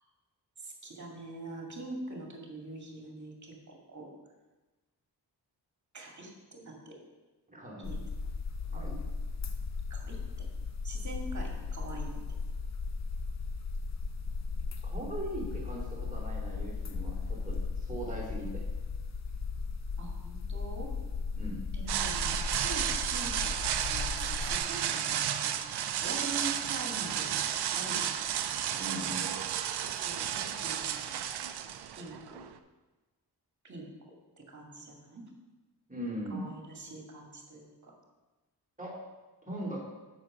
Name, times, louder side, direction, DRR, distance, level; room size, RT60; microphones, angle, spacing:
voice 1, 0.6-4.1 5.9-7.0 7.8-8.0 8.7-9.1 9.9-10.5 10.8-12.2 20.0-20.9 21.7-23.5 23.9-25.6 26.0-27.3 27.7-28.1 30.0-31.3 31.9-32.4 33.6-33.9 34.4-35.2 36.3-37.9, right 2 dB, 45° right, 1 dB, 2.0 m, -44 dB
voice 2, 7.5-7.9 8.7-9.0 14.8-18.7 21.3-21.6 28.7-29.4 35.9-36.6 38.8-39.0 39.5-39.8, right 1 dB, 20° right, -5 dB, 2.9 m, -40 dB
sound 1, 7.8-24.6, left 4 dB, 40° left, 0.7 m, -36 dB
sound 2, 21.9-32.5, right 9 dB, 70° right, 0.6 m, -32 dB
7.4 x 6.2 x 4.9 m, 1.2 s
cardioid pair, 60°, 40 cm